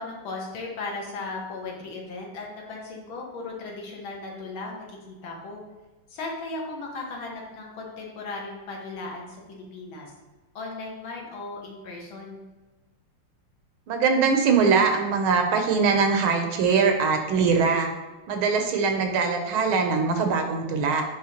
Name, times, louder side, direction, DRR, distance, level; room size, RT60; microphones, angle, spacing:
voice 1, 0.0-5.6 6.1-10.1 10.6-12.4, left 3 dB, 70° left, -1 dB, 1.9 m, -36 dB
voice 2, 13.9-17.9 18.3-21.0, right 5 dB, 75° right, 5 dB, 1.5 m, -22 dB
9.7 x 3.3 x 2.9 m, 1.2 s
omnidirectional pair, 2.4 m